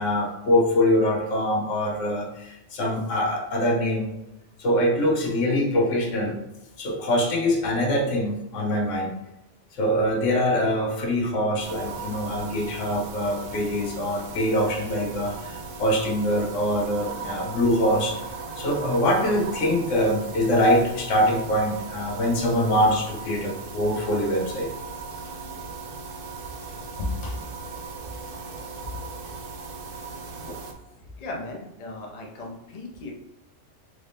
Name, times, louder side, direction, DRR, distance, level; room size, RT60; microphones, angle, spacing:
voice 1, 0.0-4.1 4.6-6.4 6.8-9.2 9.7-18.2 18.6-24.7 27.0-27.3 30.5-30.6, left 1 dB, 75° left, 1 dB, 1.1 m, -24 dB
sound 1, 11.6-30.7, right 4 dB, 60° right, 0.6 m, -37 dB
voice 2, 31.2-33.1, left 2 dB, 40° left, -1 dB, 0.7 m, -37 dB
3.7 x 2.6 x 3.3 m, 0.93 s
omnidirectional pair, 1.3 m